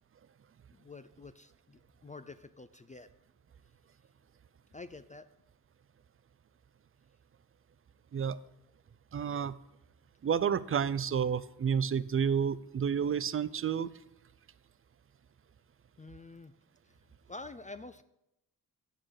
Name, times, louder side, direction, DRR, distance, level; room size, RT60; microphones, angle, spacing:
voice 1, 0.7-3.1 4.7-5.2 16.0-16.5 17.3-18.0, left 3 dB, 20° left, 11 dB, 0.4 m, -48 dB
voice 2, 9.1-9.5 10.2-13.9, right 7 dB, 35° right, 17 dB, 0.5 m, -30 dB
9.0 x 6.5 x 4.7 m, 0.89 s
cardioid pair, 55°, 38 cm